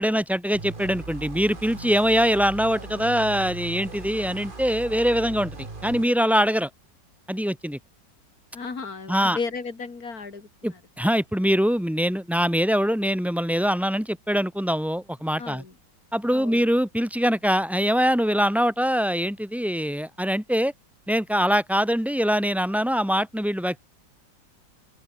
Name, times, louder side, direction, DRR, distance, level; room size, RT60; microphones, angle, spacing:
voice 1, 0.0-5.6 5.8-6.7 7.3-7.8 9.1-9.4 10.6-15.6 16.1-20.7 21.1-23.8, equal, ahead, 0.7 m, -23 dB
sound 1, 0.5-6.1, right 3 dB, 30° right, 2.5 m, -39 dB
voice 2, 8.5-10.8 15.4-15.7 16.3-16.6, left 4 dB, 55° left, 3.7 m, -34 dB
open air
omnidirectional pair, 1.9 m